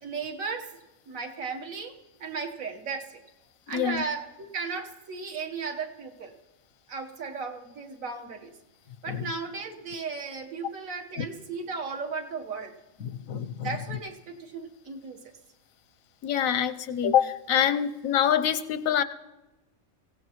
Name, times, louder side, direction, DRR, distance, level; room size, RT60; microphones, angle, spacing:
voice 1, 0.0-0.7 1.1-1.9 2.2-3.2 3.7-4.2 4.5-6.4 6.9-8.5 9.0-12.7 13.6-15.2, right 4 dB, 80° right, 3 dB, 1.6 m, -35 dB
voice 2, 3.7-4.0 9.1-9.3 11.2-11.3 13.0-14.0 16.2-19.0, left 9 dB, 85° left, 12 dB, 1.1 m, -26 dB
24.0 x 16.5 x 3.0 m, 1.0 s
omnidirectional pair, 1.4 m